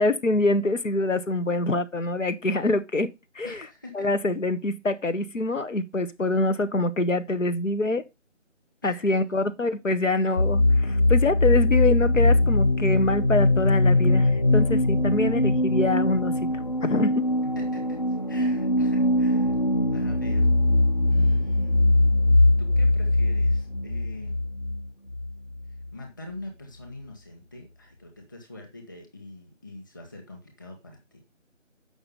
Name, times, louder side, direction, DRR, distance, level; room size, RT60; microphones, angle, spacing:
voice 1, 0.0-3.1 3.3-3.6 3.9-8.0 8.8-16.4 16.8-17.3, left 2 dB, 75° left, 1.3 m, -25 dB
voice 2, 3.4-4.1 8.8-9.2 17.5-19.6 19.9-20.5 21.1-21.8 22.6-24.4 25.9-31.2, left 2 dB, 15° left, 1.4 m, -43 dB
sound 1, 10.4-25.9, left 2 dB, 35° left, 0.7 m, -22 dB
8.0 x 5.9 x 5.3 m
figure-of-eight pair, 170°, 38 cm